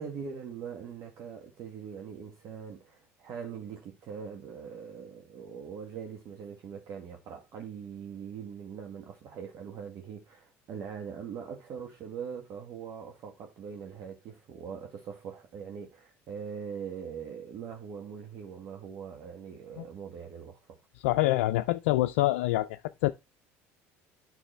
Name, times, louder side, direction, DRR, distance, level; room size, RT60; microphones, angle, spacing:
voice 1, 0.0-20.8, right 7 dB, 55° right, 1.6 m, -42 dB
voice 2, 21.0-23.1, left 16 dB, 85° left, 0.4 m, -26 dB
9.1 x 6.0 x 3.3 m
supercardioid pair, 85°, 6 cm